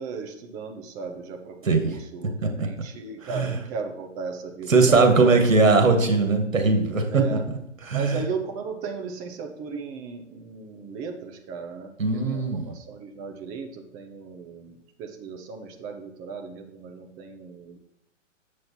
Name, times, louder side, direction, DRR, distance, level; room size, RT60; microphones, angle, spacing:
voice 1, 0.0-5.0 7.1-7.4 7.9-17.8, right 5 dB, 20° right, 4 dB, 0.9 m, -36 dB
voice 2, 1.7-2.0 2.4-2.7 3.2-3.5 4.7-7.4 7.8-8.2 12.0-12.7, right 3 dB, 80° right, 4 dB, 2.1 m, -20 dB
7.8 x 6.5 x 4.4 m, 0.83 s
hypercardioid pair, 135°, 39 cm